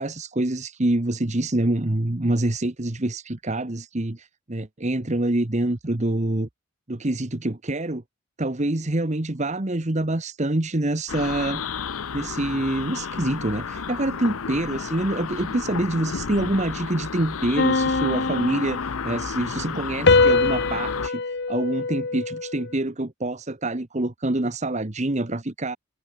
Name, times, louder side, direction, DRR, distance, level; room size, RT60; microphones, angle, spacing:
voice 1, 0.0-6.5 6.9-8.0 8.4-11.6 12.1-21.2 21.5-25.8, right 1 dB, 35° right, 1.2 m, -26 dB
sound 1, 11.1-21.1, left 6 dB, 80° left, 0.8 m, -32 dB
sound 2, 17.6-19.3 20.1-22.7, left 3 dB, 50° left, 1.0 m, -23 dB
head